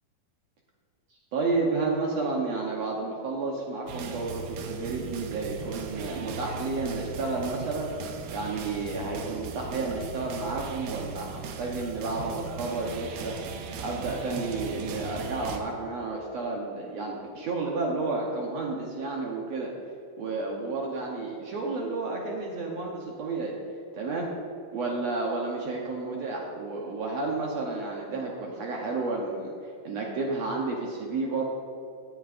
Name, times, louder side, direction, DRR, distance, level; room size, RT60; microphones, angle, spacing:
voice 1, 1.3-7.9 8.3-13.4 13.8-19.7 20.2-23.5 23.9-24.3 24.7-29.5 29.8-31.4, right 3 dB, 70° right, -1 dB, 1.6 m, -31 dB
sound 1, 3.9-15.6, right 4 dB, 85° right, 2.7 m, -38 dB
17.5 x 8.5 x 2.5 m, 2.6 s
omnidirectional pair, 4.2 m